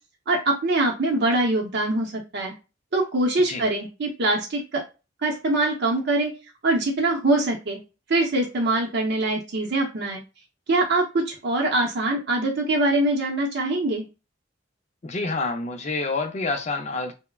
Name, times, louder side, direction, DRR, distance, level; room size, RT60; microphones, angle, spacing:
voice 1, 0.3-2.5 2.9-4.8 5.2-6.3 6.6-7.8 8.1-10.2 10.7-14.0, right 2 dB, 60° right, 0.6 m, -23 dB
voice 2, 15.0-17.1, left 3 dB, 35° left, 0.5 m, -28 dB
3.3 x 2.1 x 2.3 m
head